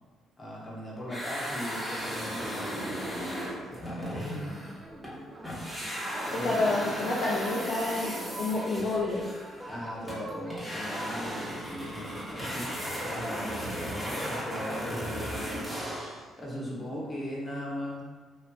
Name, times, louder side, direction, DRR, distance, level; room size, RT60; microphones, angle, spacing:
voice 1, 0.4-3.4 3.6-4.8 6.3-6.6 9.7-15.8 16.4-18.0, equal, 35° left, -5 dB, 1.0 m, -39 dB
sound 1, 1.1-5.2 5.4-16.2, equal, 5° right, 1.1 m, -36 dB
sound 2, 4.8-15.2, equal, 30° right, 0.5 m, -45 dB
voice 2, 6.4-9.3, left 2 dB, 55° left, -5 dB, 0.4 m, -29 dB
3.1 x 2.5 x 2.3 m, 1.3 s
supercardioid pair, 55°, 0 cm